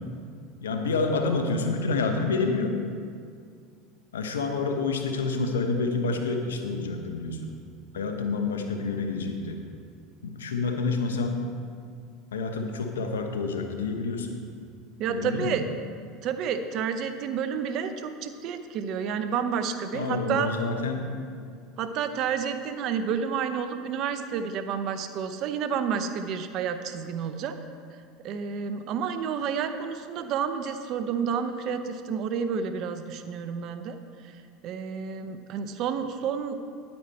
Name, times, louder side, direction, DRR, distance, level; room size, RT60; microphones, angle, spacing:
voice 1, 0.6-2.8 4.1-7.5 7.9-9.6 10.2-11.4 12.3-14.3 15.1-15.6 19.9-21.1, left 4 dB, 90° left, 5 dB, 1.0 m, -28 dB
voice 2, 15.0-15.6 16.2-20.5 21.8-27.6 28.2-34.0 34.2-36.5, right 7 dB, 55° right, 9 dB, 0.7 m, -30 dB
10.0 x 8.8 x 4.3 m, 2.2 s
hypercardioid pair, 85°, 0 cm